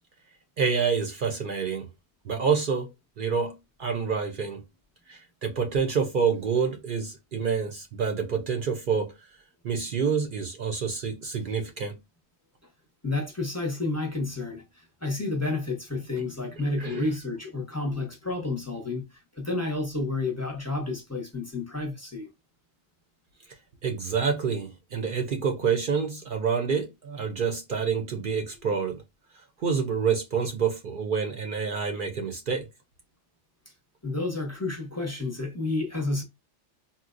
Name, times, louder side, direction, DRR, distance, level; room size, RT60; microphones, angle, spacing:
voice 1, 0.6-1.9 2.2-2.9 3.2-4.6 5.1-9.3 9.6-12.0 16.1-16.2 16.8-17.1 23.8-29.0 29.6-32.7, right 6 dB, 60° right, 0.6 m, -27 dB
voice 2, 13.0-22.3 34.0-36.2, left 2 dB, 20° left, 0.6 m, -30 dB
4.1 x 2.1 x 2.4 m
omnidirectional pair, 1.2 m